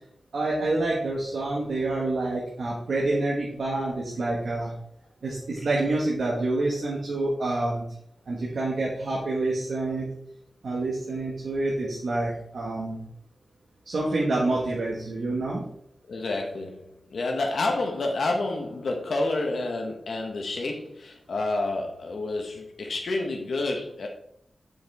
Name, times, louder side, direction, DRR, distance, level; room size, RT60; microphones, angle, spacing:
voice 1, 0.3-4.7 5.2-7.8 8.3-10.1 10.6-13.0 13.8-15.6, right 2 dB, 85° right, -4 dB, 1.7 m, -27 dB
voice 2, 16.1-24.1, left 2 dB, 85° left, 2 dB, 1.2 m, -29 dB
7.0 x 6.8 x 3.5 m, 0.70 s
wide cardioid pair, 135°, 0 cm